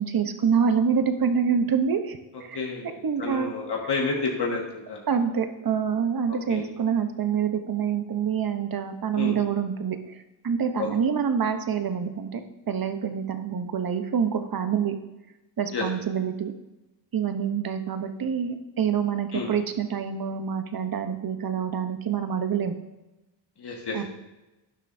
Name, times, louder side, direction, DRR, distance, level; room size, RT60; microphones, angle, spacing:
voice 1, 0.0-2.6 3.0-3.5 5.1-12.4 12.7-15.0 15.6-16.5 17.1-22.7 23.9-24.0, right 7 dB, 50° right, 8 dB, 0.9 m, -26 dB
voice 2, 2.5-5.0 6.5-6.6 9.1-9.4 10.8-10.9 15.7-15.8 19.3-19.5 23.6-24.0, left 4 dB, 60° left, 0 dB, 1.7 m, -30 dB
11.5 x 10.5 x 2.6 m, 1.0 s
wide cardioid pair, 130°, 46 cm